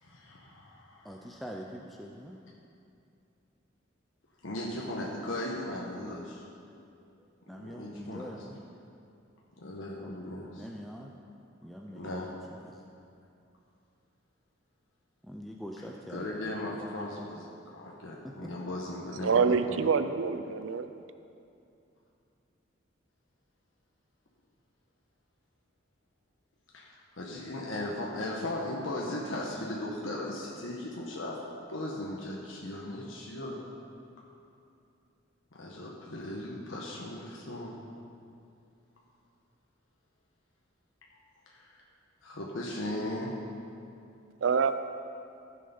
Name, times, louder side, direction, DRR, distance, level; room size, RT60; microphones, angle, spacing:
voice 1, 0.0-1.4 4.4-6.4 7.5-8.3 9.6-10.7 11.9-12.3 16.1-17.5 17.7-19.8 26.7-33.6 35.5-37.7 41.5-41.8 42.2-43.3, left 1 dB, 80° left, -3 dB, 1.2 m, -37 dB
voice 2, 1.0-2.4 7.1-8.6 10.6-11.1 11.6-12.3 12.6-12.8 15.2-17.3 18.2-18.5, equal, ahead, 0 dB, 0.5 m, -44 dB
voice 3, 19.2-20.9 44.4-44.7, right 5 dB, 75° right, 10 dB, 0.5 m, -26 dB
14.5 x 6.6 x 5.5 m, 2.6 s
head